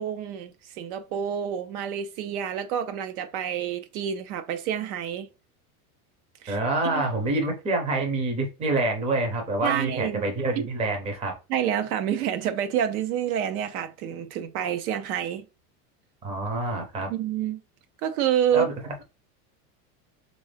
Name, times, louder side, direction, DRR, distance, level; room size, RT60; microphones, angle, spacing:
voice 1, 0.0-5.3 6.4-7.1 9.6-10.2 10.6-10.7 11.5-15.5 17.1-17.6 18.0-18.7, right 9 dB, 75° right, 0.7 m, -28 dB
voice 2, 6.5-11.3 16.2-17.1 18.5-18.7, right 2 dB, 15° right, 0.6 m, -27 dB
3.5 x 2.6 x 3.3 m
supercardioid pair, 150°, 44 cm